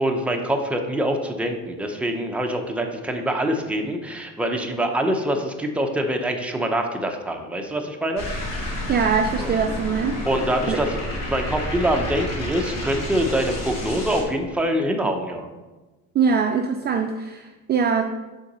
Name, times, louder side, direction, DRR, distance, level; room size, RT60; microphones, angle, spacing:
voice 1, 0.0-8.2 9.4-9.5 10.2-11.0 11.3-15.5, right 1 dB, 5° right, 2 dB, 0.8 m, -24 dB
sound 1, 8.2-14.2, left 1 dB, 50° left, 2.2 m, -30 dB
voice 2, 8.9-10.2 10.7-10.8 16.1-18.0, right 6 dB, 30° right, 5 dB, 0.4 m, -22 dB
6.9 x 3.9 x 5.4 m, 1.2 s
cardioid pair, 110°, 34 cm